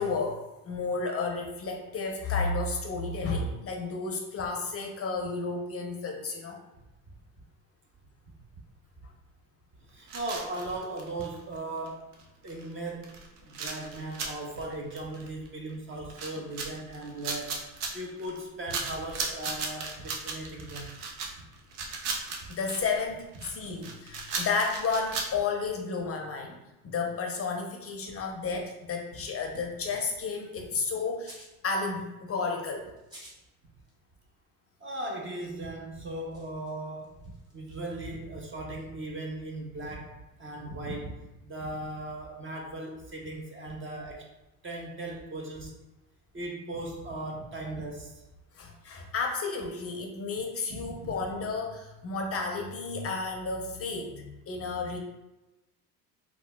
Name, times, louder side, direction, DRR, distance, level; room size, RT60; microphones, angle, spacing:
voice 1, 0.0-6.6 22.6-26.6 26.8-32.9 48.5-55.0, left 4 dB, 30° left, 2 dB, 0.6 m, -32 dB
voice 2, 9.9-12.1 12.4-13.1 13.4-17.7 17.9-20.9 22.4-22.5 34.8-44.3 44.6-45.7 46.3-48.2 50.7-51.1, right 2 dB, 25° right, 0 dB, 0.6 m, -38 dB
sound 1, 10.1-11.6 11.9-12.0 12.1-12.2 12.5-12.7 13.0-15.7 16.1-18.4 18.7-25.3, right 4 dB, 75° right, 0.7 m, -36 dB
sound 2, 31.1-31.6 33.0-33.4 33.8-33.9 35.4-35.5 36.0-37.8, right 1 dB, 10° right, 1.1 m, -52 dB
3.7 x 2.3 x 2.2 m, 0.99 s
hypercardioid pair, 65°, 46 cm